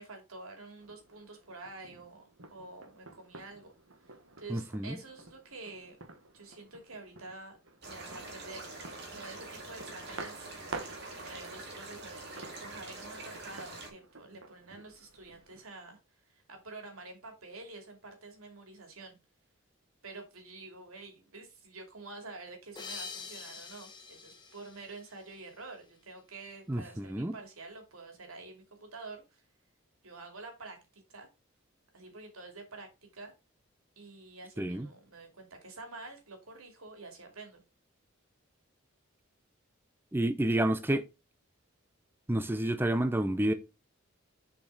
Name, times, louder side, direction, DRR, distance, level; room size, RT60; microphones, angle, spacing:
voice 1, 0.0-3.7 4.0-6.0 6.3-7.6 7.8-8.7 9.1-10.7 11.2-16.0 16.3-19.2 20.0-29.4 30.0-31.3 31.9-32.9 33.1-33.3 34.0-37.6, right 3 dB, 90° right, 2.7 m, -48 dB
sound 1, 0.8-15.7, right 3 dB, 70° right, 1.3 m, -50 dB
voice 2, 4.5-5.0 26.7-27.3 34.6-34.9 40.1-41.1 42.3-43.5, right 1 dB, 10° right, 0.4 m, -29 dB
sound 2, 7.8-13.9, right 2 dB, 50° right, 2.3 m, -45 dB
sound 3, 22.8-25.8, left 5 dB, 20° left, 1.0 m, -46 dB
6.9 x 5.0 x 3.9 m
head